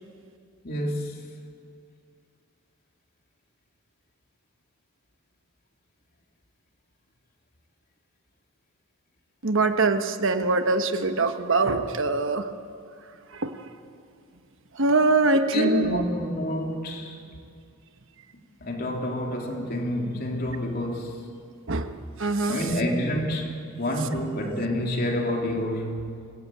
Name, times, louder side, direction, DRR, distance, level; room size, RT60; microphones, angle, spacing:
voice 1, 0.6-1.2 15.5-17.2 18.6-21.2 22.5-26.2, equal, 45° left, 1 dB, 3.2 m, -28 dB
voice 2, 9.4-12.5 13.3-13.7 14.7-16.0 21.7-22.7, right 3 dB, 60° right, 8 dB, 1.2 m, -23 dB
25.5 x 17.5 x 8.8 m, 2.3 s
head